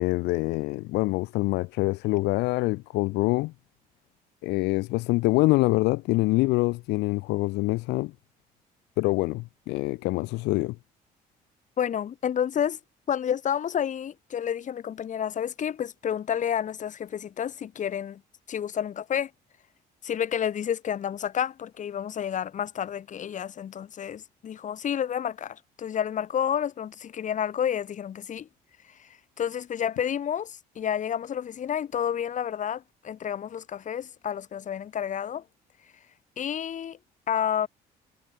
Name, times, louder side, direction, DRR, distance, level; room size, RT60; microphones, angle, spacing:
voice 1, 0.0-3.5 4.4-8.1 9.0-10.8, left 21 dB, 90° left, 0.7 m, -25 dB
voice 2, 11.8-12.8 13.1-18.2 18.5-19.3 20.0-28.5 29.0-29.1 29.4-35.4 36.4-37.0 37.3-37.7, left 9 dB, 45° left, 2.5 m, -30 dB
cardioid pair, 110°, 17 cm